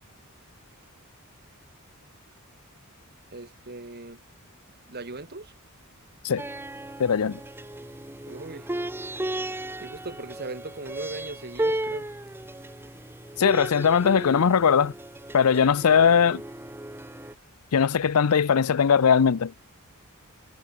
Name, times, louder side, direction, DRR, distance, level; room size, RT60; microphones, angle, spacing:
voice 1, 3.3-4.2 4.9-5.5 8.3-8.7 9.8-12.1, right 2 dB, 45° right, 2.6 m, -38 dB
sound 1, 6.4-17.3, right 1 dB, 10° right, 1.0 m, -35 dB
voice 2, 7.0-7.4 13.4-14.9 15.3-16.4 17.7-19.5, left 7 dB, 85° left, 0.5 m, -20 dB
head